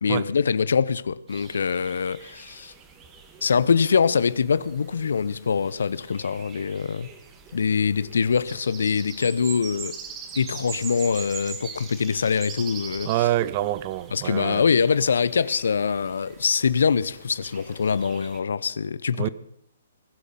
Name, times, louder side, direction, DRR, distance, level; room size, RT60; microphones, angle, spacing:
voice 1, 0.0-2.7 3.4-7.1 7.5-9.9 10.4-13.1 14.1-19.3, left 6 dB, 70° left, 0.7 m, -24 dB
sound 1, 1.3-18.4, right 6 dB, 20° right, 2.3 m, -43 dB
voice 2, 13.0-14.6 19.2-19.3, right 14 dB, 35° right, 0.8 m, -26 dB
20.5 x 12.0 x 5.5 m
figure-of-eight pair, 130°, 0 cm